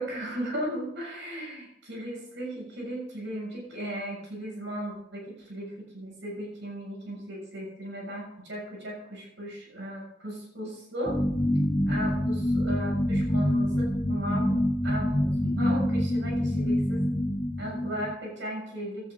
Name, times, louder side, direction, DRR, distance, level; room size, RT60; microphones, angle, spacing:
voice 1, 0.0-11.2 11.9-14.5 14.8-17.0 17.6-19.1, right 1 dB, 65° right, -1 dB, 7.1 m, -36 dB
sound 1, 11.0-18.1, left 1 dB, 10° left, 0.5 m, -26 dB
17.0 x 12.5 x 4.0 m, 0.82 s
head